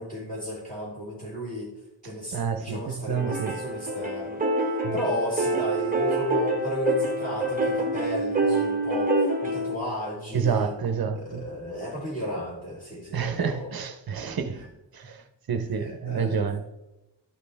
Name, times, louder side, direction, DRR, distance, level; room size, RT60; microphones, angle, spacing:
voice 1, 0.0-1.7 2.0-4.4 4.9-10.7 11.1-13.7 15.8-16.4, left 1 dB, 15° left, 3.5 m, -33 dB
voice 2, 2.3-3.6 4.8-5.0 10.3-11.4 13.1-16.6, right 6 dB, 50° right, 0.8 m, -29 dB
sound 1, 3.2-9.8, right 2 dB, 20° right, 1.1 m, -26 dB
12.0 x 6.6 x 3.4 m
wide cardioid pair, 155°, 47 cm